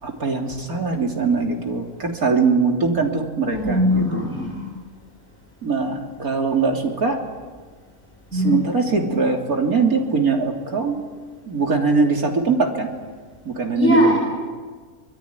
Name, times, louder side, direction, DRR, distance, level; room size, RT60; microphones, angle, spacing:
voice 1, 0.0-4.3 5.6-7.2 8.3-11.0 11.5-12.9 13.5-14.1, right 4 dB, 85° right, 2 dB, 3.7 m, -22 dB
voice 2, 3.4-4.6 8.3-8.6 13.7-14.1, left 1 dB, 10° left, -3 dB, 6.3 m, -19 dB
25.0 x 21.5 x 9.6 m, 1.5 s
omnidirectional pair, 1.5 m